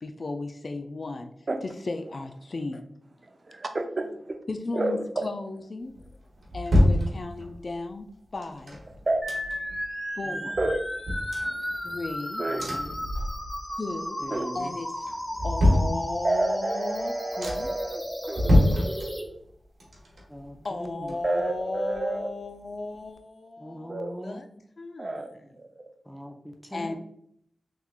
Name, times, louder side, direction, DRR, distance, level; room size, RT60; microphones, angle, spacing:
voice 1, 0.0-1.3 1.6-3.0 4.5-5.9 6.5-8.1 8.3-8.8 10.2-10.5 11.8-12.4 13.8-14.2 14.5-15.1 15.4-17.7 20.6-23.9 24.2-24.5 24.8-25.3 26.7-27.0, left 3 dB, 60° left, 6 dB, 0.3 m, -35 dB
voice 2, 3.5-4.4 4.7-5.2 9.1-9.2 10.6-10.8 12.4-12.7 14.3-14.5 16.2-19.4 21.2-22.3 23.9-24.1 25.0-25.3 25.6-25.8, right 2 dB, 50° right, 6 dB, 0.5 m, -30 dB
sound 1, 6.0-7.7 8.4-9.8 10.2-10.3 10.5-12.2 12.6-13.8 14.1-14.6 15.0-16.5 17.0-17.1 17.4-17.9 18.3-19.5 19.8-21.6 21.9-22.0, left 1 dB, 75° right, 1.1 m, -26 dB
sound 2, 9.2-19.2, equal, 15° left, 1.1 m, -34 dB
voice 3, 12.5-12.9 14.2-14.8 20.3-21.2 23.6-24.5 26.1-27.0, equal, ahead, 2 dB, 0.5 m, -40 dB
3.6 x 3.0 x 2.3 m, 0.68 s
cardioid pair, 40°, 0 cm